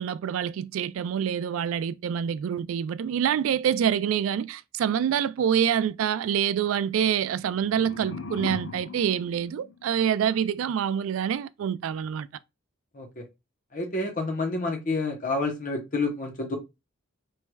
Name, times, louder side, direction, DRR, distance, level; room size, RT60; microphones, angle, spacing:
voice 1, 0.0-12.3, right 8 dB, 80° right, 0.3 m, -26 dB
sound 1, 7.2-10.3, left 4 dB, 70° left, 0.6 m, -40 dB
voice 2, 13.7-16.6, left 3 dB, 40° left, 0.8 m, -29 dB
4.5 x 3.1 x 2.2 m
head